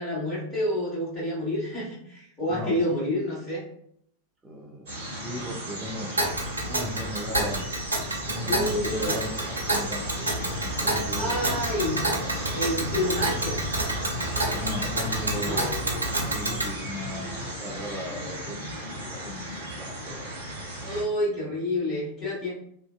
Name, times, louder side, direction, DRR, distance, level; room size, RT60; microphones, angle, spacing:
voice 1, 0.0-3.6 8.4-9.2 11.2-12.1 12.5-13.6 15.4-15.6 20.8-22.5, left 1 dB, 20° left, -12 dB, 1.2 m, -28 dB
voice 2, 2.5-2.8 4.4-6.1 6.7-7.6 8.3-10.3 10.6-11.6 14.5-20.3 21.2-21.5, equal, 15° right, -1 dB, 0.5 m, -37 dB
sound 1, 4.9-21.0, equal, 55° right, 1.0 m, -35 dB
Tick, 6.2-16.7, right 1 dB, 75° right, 0.5 m, -29 dB
2.6 x 2.1 x 2.3 m, 0.71 s
figure-of-eight pair, 90°, 0 cm